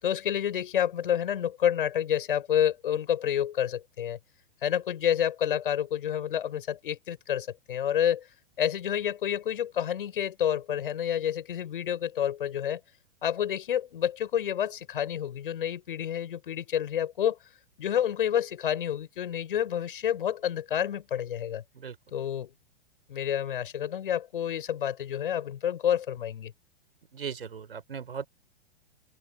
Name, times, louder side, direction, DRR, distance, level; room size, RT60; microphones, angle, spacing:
voice 1, 0.0-4.2 4.6-8.2 8.6-12.8 13.2-17.4 17.8-21.6 22.1-22.5 23.1-26.5, left 10 dB, 60° left, 6.2 m, -29 dB
voice 2, 27.1-28.3, right 6 dB, 65° right, 6.2 m, -37 dB
open air
figure-of-eight pair, 105°, 31 cm